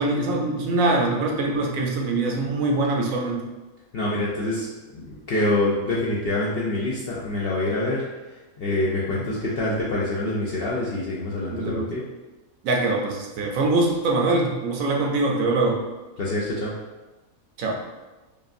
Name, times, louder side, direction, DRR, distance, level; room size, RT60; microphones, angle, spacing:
voice 1, 0.0-3.4 11.5-11.9 12.6-15.8 17.6-17.8, right 2 dB, 70° right, 0 dB, 1.0 m, -23 dB
voice 2, 3.9-4.7 4.9-8.0 8.6-12.0 16.2-16.7, left 2 dB, 60° left, -6 dB, 0.6 m, -25 dB
5.0 x 2.3 x 2.5 m, 1.1 s
omnidirectional pair, 1.5 m